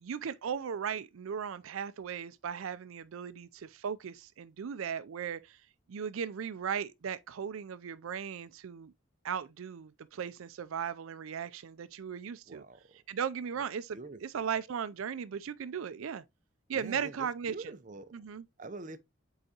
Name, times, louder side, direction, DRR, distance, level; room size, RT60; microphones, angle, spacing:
voice 1, 0.0-5.6 5.9-8.9 9.2-12.6 13.1-16.2 16.7-17.7 18.1-18.5, right 7 dB, 85° right, 0.4 m, -37 dB
voice 2, 12.5-12.8 13.9-14.2 16.7-18.1 18.6-19.0, right 3 dB, 40° right, 0.6 m, -45 dB
7.7 x 4.8 x 2.8 m
head